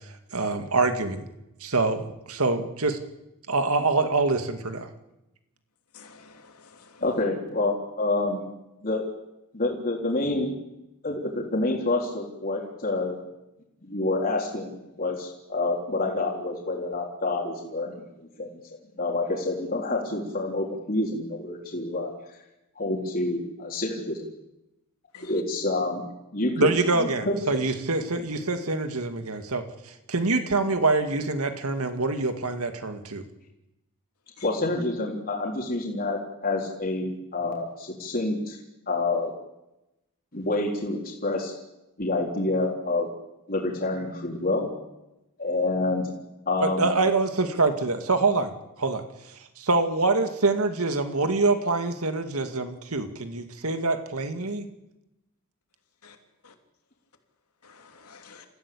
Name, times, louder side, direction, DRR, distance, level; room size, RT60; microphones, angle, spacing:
voice 1, 0.3-1.2 1.6-3.0 3.5-4.9 26.6-29.6 30.1-33.2 46.6-48.5 48.8-49.0 49.6-54.6, right 3 dB, 75° right, 7 dB, 2.2 m, -25 dB
voice 2, 5.9-7.0 25.1-25.3 34.4-34.5 56.0-56.2 56.4-56.5 57.6-58.4, left 6 dB, 85° left, 4 dB, 3.0 m, -50 dB
voice 3, 7.0-8.4 8.8-9.0 9.5-10.5 11.0-13.2 13.8-18.0 18.4-18.5 19.0-22.1 22.8-24.3 25.2-26.0 26.3-27.6 34.4-38.6 38.9-39.3 40.3-41.5 42.0-43.1 43.5-44.7 45.4-46.0 46.5-46.9, left 2 dB, 40° left, -2 dB, 3.7 m, -28 dB
28.0 x 15.5 x 8.6 m, 0.94 s
head